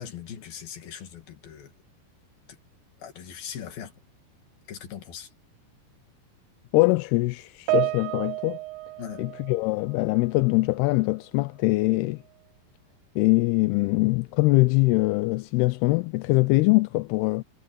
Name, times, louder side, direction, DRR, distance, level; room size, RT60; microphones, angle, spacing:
voice 1, 0.0-1.7 2.5-2.6 3.0-3.9 4.7-5.3 9.0-9.2, left 9 dB, 70° left, 4.3 m, -40 dB
voice 2, 6.7-8.6 9.2-12.2 13.2-17.4, left 23 dB, 90° left, 2.7 m, -23 dB
Piano, 7.7-10.3 10.6-10.9 11.7-11.8, right 21 dB, 80° right, 2.1 m, -31 dB
omnidirectional pair, 4.5 m